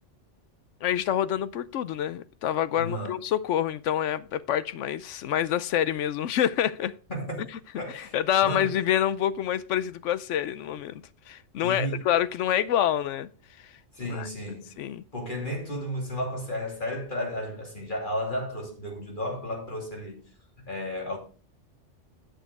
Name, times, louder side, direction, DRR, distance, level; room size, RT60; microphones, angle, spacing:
voice 1, 0.8-6.9 7.9-11.0 11.3-13.3 14.1-14.3 14.8-15.0, left 10 dB, 80° left, 1.0 m, -27 dB
voice 2, 2.7-3.2 7.1-7.4 7.8-8.2 8.4-8.8 11.6-12.1 13.9-14.7 15.1-20.2 20.6-21.2, equal, 45° left, 2.9 m, -33 dB
9.2 x 6.7 x 4.7 m
omnidirectional pair, 1.2 m